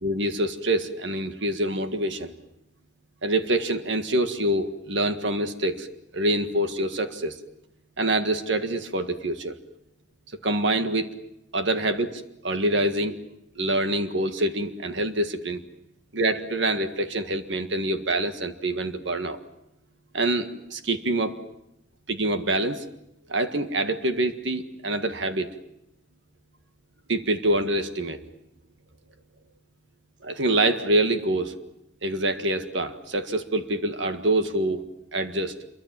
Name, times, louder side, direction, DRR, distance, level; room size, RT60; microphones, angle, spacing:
voice 1, 0.0-2.3 3.2-5.9 6.1-7.4 8.0-9.5 10.4-11.1 11.5-13.2 13.6-15.6 16.1-19.4 20.1-21.4 22.1-22.8 23.3-25.5 27.1-28.2 30.2-31.5 32.0-34.9 35.1-35.6, right 1 dB, 65° right, 8 dB, 1.7 m, -25 dB
27.5 x 23.5 x 7.6 m, 0.85 s
head